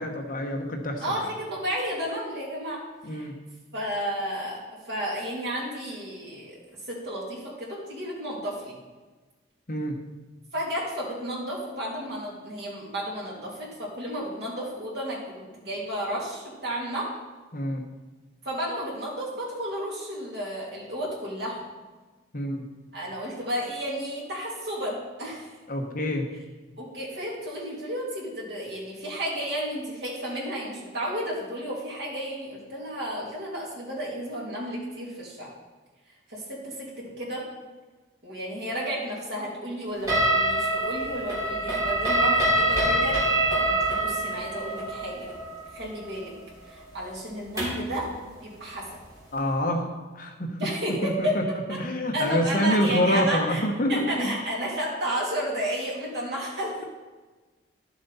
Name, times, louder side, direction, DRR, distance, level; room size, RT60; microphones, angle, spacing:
voice 1, 0.0-1.2 3.0-3.4 9.7-10.0 17.5-17.9 22.3-22.7 25.7-26.3 49.3-49.9 50.1-50.6 51.0-51.4 51.8-54.4, equal, 45° left, 3 dB, 1.1 m, -27 dB
voice 2, 1.0-2.8 3.1-3.3 3.7-6.6 6.9-8.7 10.5-17.1 18.4-21.6 22.9-25.5 26.8-35.5 36.3-37.4 38.2-43.2 43.6-45.3 45.7-46.3 46.6-48.1 48.4-48.9 50.6-51.8 52.1-53.6 53.9-56.7, equal, 60° right, -4 dB, 3.1 m, -32 dB
sound 1, 40.1-47.9, right 1 dB, 20° right, 2.9 m, -25 dB
11.5 x 7.4 x 4.2 m, 1.3 s
head